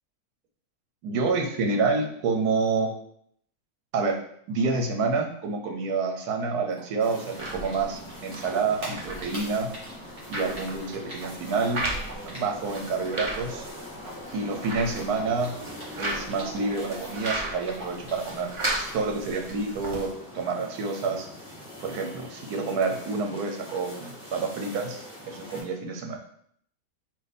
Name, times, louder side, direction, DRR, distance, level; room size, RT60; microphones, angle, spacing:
voice 1, 1.0-2.9 3.9-4.2 4.5-9.7 10.3-11.8 12.2-13.7 14.3-15.5 16.0-18.5 18.8-21.3 21.8-26.2, right 4 dB, 85° right, 3 dB, 1.3 m, -28 dB
Typing, 6.7-8.1 8.4-12.8 13.1-16.7 17.0-18.3, right 1 dB, 50° right, 2.0 m, -43 dB
sound 1, 7.0-25.6, equal, 10° left, 1.3 m, -42 dB
sound 2, 7.4-20.1, right 2 dB, 35° right, 0.5 m, -36 dB
4.5 x 2.6 x 4.1 m, 0.65 s
omnidirectional pair, 1.6 m